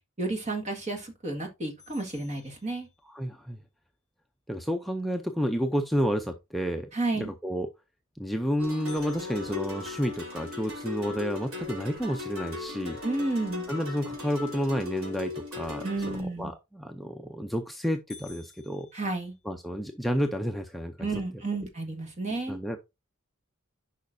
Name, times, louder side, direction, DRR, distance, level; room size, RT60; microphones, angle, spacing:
voice 1, 0.2-2.9 6.9-7.3 13.0-13.7 15.8-16.5 18.9-19.3 21.0-22.6, right 2 dB, 35° right, 1.7 m, -31 dB
sound 1, 1.8-3.4 8.9-11.0 11.5-11.6 12.1-12.2 12.9-13.2 16.8-17.2 17.6-17.7 18.1-19.8, left 5 dB, 15° left, 3.4 m, -54 dB
voice 2, 3.1-3.6 4.5-7.7 8.2-13.0 13.7-18.9 19.5-21.1 22.5-22.8, equal, ahead, 0.5 m, -30 dB
sound 2, 8.6-16.2, left 3 dB, 75° right, 3.1 m, -38 dB
10.5 x 5.3 x 2.6 m
head